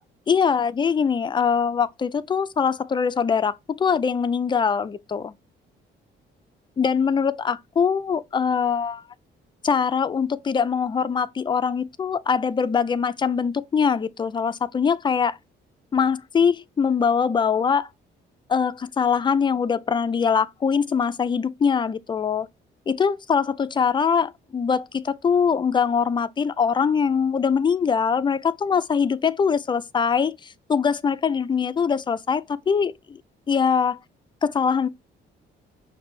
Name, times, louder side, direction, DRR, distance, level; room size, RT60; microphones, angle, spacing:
voice 1, 0.3-5.3 6.8-9.0 9.6-15.4 15.9-17.9 18.5-22.5 22.9-33.2 33.5-34.0 34.4-34.9, left 6 dB, 25° left, 0.3 m, -22 dB
5.8 x 2.6 x 3.2 m
cardioid pair, 90°, 20 cm